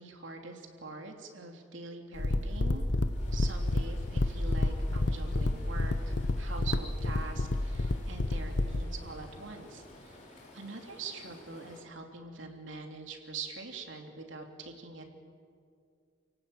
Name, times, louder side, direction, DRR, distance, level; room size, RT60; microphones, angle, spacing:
voice 1, 0.0-2.9 3.3-15.2, right 3 dB, 70° right, 3 dB, 3.1 m, -44 dB
sound 1, 2.2-8.8, left 2 dB, 60° left, 1.0 m, -30 dB
Stream, 3.1-11.8, left 1 dB, 40° left, 4.1 m, -53 dB
29.5 x 17.0 x 8.9 m, 2.4 s
head